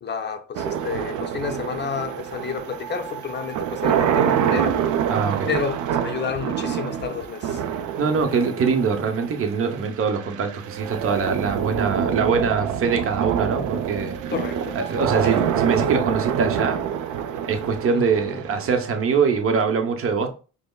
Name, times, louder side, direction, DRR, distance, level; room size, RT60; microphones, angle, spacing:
voice 1, 0.0-4.8 5.5-7.6 14.3-14.8 15.2-15.5 17.9-18.1, left 6 dB, 35° left, 0.6 m, -30 dB
sound 1, 0.5-19.6, right 8 dB, 65° right, 0.5 m, -26 dB
voice 2, 5.1-5.5 8.0-14.2 14.7-16.8 17.4-20.3, right 5 dB, 45° right, 0.8 m, -23 dB
5.2 x 2.1 x 2.3 m
cardioid pair, 85°, 33 cm